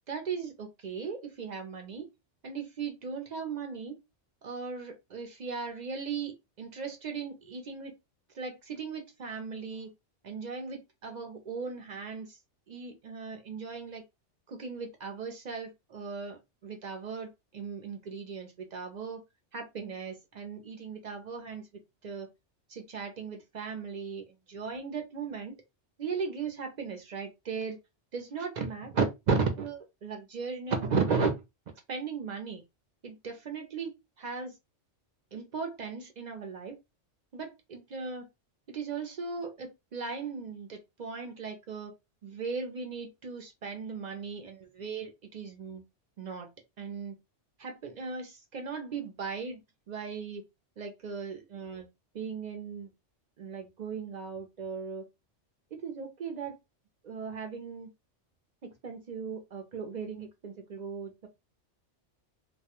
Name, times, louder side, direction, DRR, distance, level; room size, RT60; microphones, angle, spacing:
voice 1, 0.1-2.1 2.4-4.0 4.4-7.9 8.3-9.9 10.2-12.4 12.7-14.0 14.5-19.2 19.5-21.7 22.0-22.3 22.7-25.5 26.0-27.8 28.1-31.4 31.9-32.6 33.0-33.9 34.2-34.5 35.3-36.8 37.3-38.3 38.7-41.9 42.2-45.8 46.2-46.5 46.8-47.2 47.6-49.6 49.9-50.4 50.8-51.9 52.1-52.9 53.4-55.0 55.7-56.6 57.0-57.9 58.6-61.3, right 5 dB, 60° right, 0.4 m, -37 dB
2.3 x 2.1 x 2.8 m
omnidirectional pair, 1.2 m